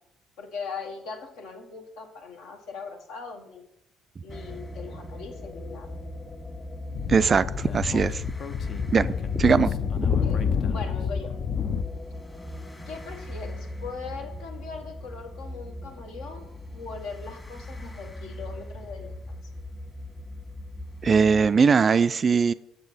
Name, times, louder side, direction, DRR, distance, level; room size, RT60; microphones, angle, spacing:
voice 1, 0.4-3.6 4.2-5.9 10.1-10.4 10.7-11.4 12.9-16.5 16.7-19.1 19.4-19.5, left 4 dB, 65° left, 3 dB, 1.1 m, -40 dB
sound 1, 4.3-21.5, left 1 dB, 20° left, 1.5 m, -40 dB
Speech / Wind, 6.9-11.8, left 7 dB, 50° left, 0.6 m, -28 dB
voice 2, 7.1-8.2 8.9-9.1 9.4-9.7 21.0-22.5, right 5 dB, 40° right, 15 dB, 0.3 m, -20 dB
6.9 x 6.7 x 4.1 m, 0.81 s
figure-of-eight pair, 50°, 0 cm